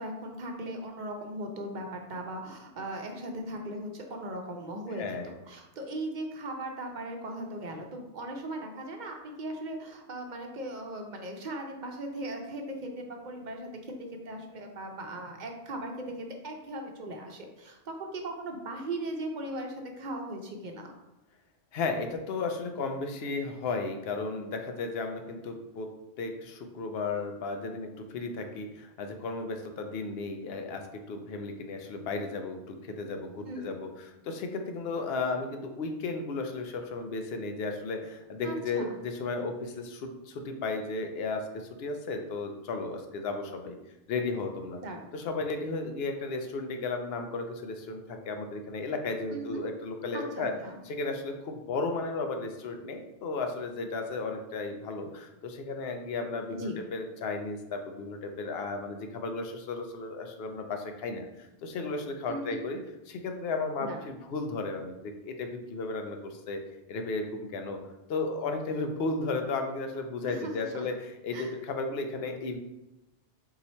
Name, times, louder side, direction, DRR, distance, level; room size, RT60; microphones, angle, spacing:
voice 1, 0.0-20.9 33.5-33.7 38.4-39.0 44.8-45.1 49.3-49.6 50.1-50.8 56.5-56.8 62.3-62.6 63.8-64.0 70.3-70.9 71.3-71.5, right 1 dB, 50° right, 3 dB, 0.6 m, -38 dB
voice 2, 4.9-5.3 21.7-25.9 26.2-43.7 44.1-44.8 45.1-50.5 50.9-62.8 63.1-66.6 66.9-67.8 68.1-72.6, left 3 dB, 65° left, 5 dB, 0.8 m, -34 dB
4.0 x 2.9 x 4.2 m, 0.96 s
omnidirectional pair, 1.2 m